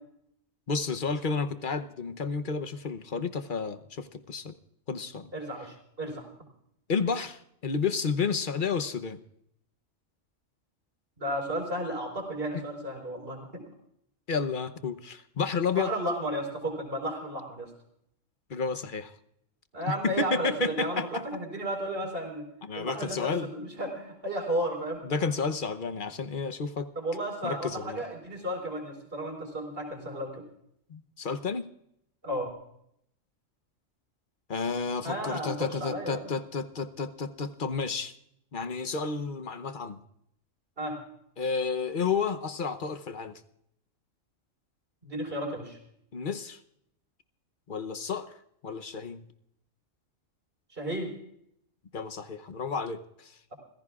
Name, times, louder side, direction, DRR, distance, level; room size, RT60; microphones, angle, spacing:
voice 1, 0.7-4.5 4.9-5.3 6.9-9.2 12.5-12.6 14.3-15.9 18.5-19.1 19.9-21.2 22.6-23.5 25.0-26.9 27.4-28.0 30.9-31.7 34.5-38.1 38.5-40.0 41.4-43.4 46.1-46.6 47.7-48.3 48.6-49.2 51.9-53.3, left 5 dB, 45° left, 10 dB, 0.9 m, -31 dB
voice 2, 5.3-6.3 11.2-13.6 15.7-17.7 19.7-22.4 22.8-25.0 26.9-30.4 32.2-32.5 35.0-36.3 40.8-41.0 45.0-45.8 50.7-51.1, right 1 dB, 45° right, 1 dB, 4.5 m, -33 dB
29.0 x 16.0 x 2.4 m, 0.73 s
omnidirectional pair, 1.3 m